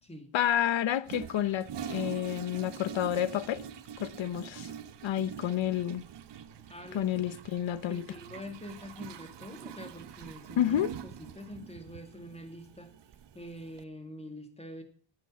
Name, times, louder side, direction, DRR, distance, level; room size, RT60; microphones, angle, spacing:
voice 1, 0.3-3.6 4.0-4.7 5.0-6.0 6.9-8.0 10.6-10.9, left 11 dB, 80° left, 0.9 m, -29 dB
Toilet flush, 1.0-13.8, right 8 dB, 70° right, 1.0 m, -44 dB
voice 2, 6.6-7.2 7.9-12.9 13.3-14.8, left 1 dB, 15° left, 2.3 m, -45 dB
12.5 x 8.9 x 7.3 m
wide cardioid pair, 120°, 45 cm